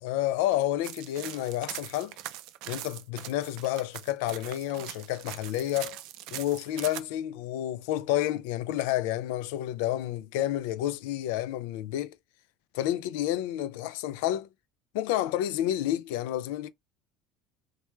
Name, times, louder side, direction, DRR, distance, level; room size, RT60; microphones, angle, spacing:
voice 1, 0.0-2.2 2.7-6.0 6.3-12.2 12.7-14.5 14.9-16.7, left 13 dB, 80° left, 0.3 m, -30 dB
sound 1, 0.8-7.0, right 14 dB, 70° right, 0.3 m, -41 dB
2.9 x 2.2 x 2.2 m
supercardioid pair, 90°, 0 cm